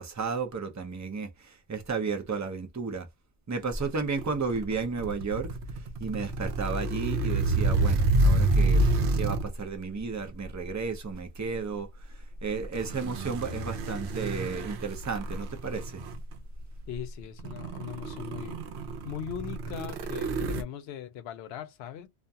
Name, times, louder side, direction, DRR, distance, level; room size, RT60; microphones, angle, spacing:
voice 1, 0.0-3.1 3.5-5.5 5.7-8.8 9.1-16.0, right 4 dB, 30° right, 0.3 m, -33 dB
sound 1, 4.0-9.6 10.4-10.7 12.6-16.4 16.9-17.0 17.4-20.6, right 2 dB, 70° right, 0.9 m, -28 dB
voice 2, 16.9-18.6 19.0-22.1, left 9 dB, 70° left, 0.8 m, -39 dB
2.4 x 2.3 x 2.6 m
omnidirectional pair, 1.1 m